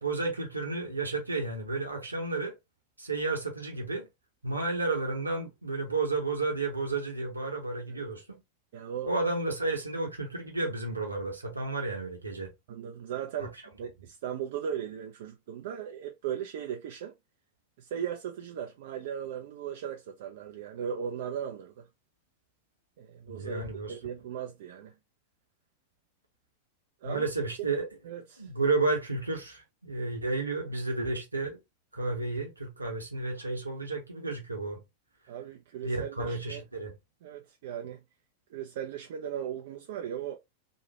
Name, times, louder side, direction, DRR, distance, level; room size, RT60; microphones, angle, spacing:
voice 1, 0.0-2.5 3.0-4.0 4.4-8.4 9.0-12.5 13.4-13.5 23.3-23.9 27.0-27.9 28.4-31.6 31.9-34.8 35.8-36.9, right 3 dB, 80° right, 1.0 m, -32 dB
voice 2, 8.7-9.1 12.7-13.5 13.8-17.1 17.8-21.9 23.0-23.6 23.9-24.9 27.0-27.2 27.6-27.7 28.0-28.5 35.3-36.6 37.2-38.0 38.5-40.4, right 9 dB, 55° right, 0.5 m, -37 dB
3.1 x 2.4 x 3.0 m
figure-of-eight pair, 90°, 0 cm